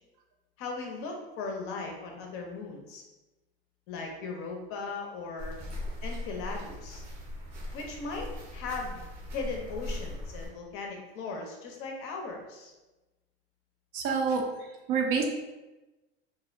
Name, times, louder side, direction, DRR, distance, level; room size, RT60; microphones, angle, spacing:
voice 1, 0.6-3.0 3.9-5.5 6.0-7.0 7.7-8.3 8.5-9.0 9.3-12.7, left 4 dB, 45° left, 1 dB, 0.6 m, -38 dB
sound 1, 5.4-10.5, left 1 dB, 75° right, 0.9 m, -39 dB
voice 2, 13.9-15.2, right 5 dB, 45° right, 1 dB, 0.5 m, -28 dB
2.5 x 2.0 x 2.5 m, 1.1 s
hypercardioid pair, 110°, 31 cm